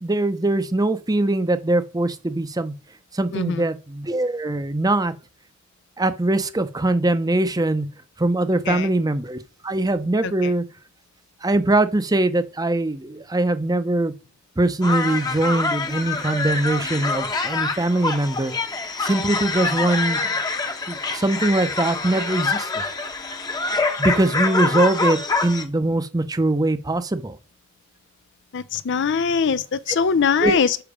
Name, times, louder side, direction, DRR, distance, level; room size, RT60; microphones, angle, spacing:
voice 1, 0.0-2.7 3.2-5.1 6.0-7.9 8.2-9.4 9.6-10.6 11.4-14.1 14.6-18.5 19.0-20.2 20.9-21.0 21.2-22.7 24.0-27.3 30.4-30.6, right 2 dB, 20° right, 0.6 m, -22 dB
voice 2, 3.3-3.7 8.6-8.9 10.2-10.5 28.5-30.8, left 5 dB, 60° left, 0.5 m, -22 dB
sound 1, 14.8-25.6, left 3 dB, 20° left, 0.9 m, -25 dB
6.9 x 5.8 x 4.9 m
head